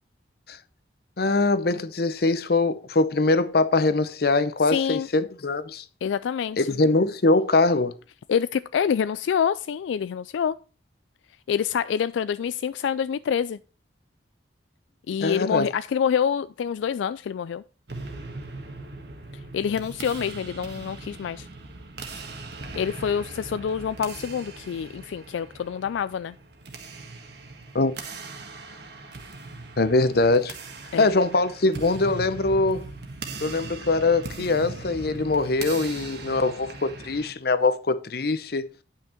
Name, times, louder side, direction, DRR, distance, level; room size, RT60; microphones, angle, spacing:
voice 1, 1.2-5.8 6.6-8.0 15.2-15.7 27.7-27.9 29.8-30.5 31.0-32.9 33.4-38.7, left 3 dB, 55° left, 0.7 m, -22 dB
voice 2, 4.7-5.1 6.0-6.7 8.3-10.6 11.5-13.6 15.1-17.6 19.5-21.5 22.7-26.3 30.9-31.1, left 7 dB, 85° left, 0.3 m, -26 dB
sound 1, 17.9-37.3, right 3 dB, 60° right, 1.5 m, -40 dB
9.6 x 5.8 x 4.4 m
head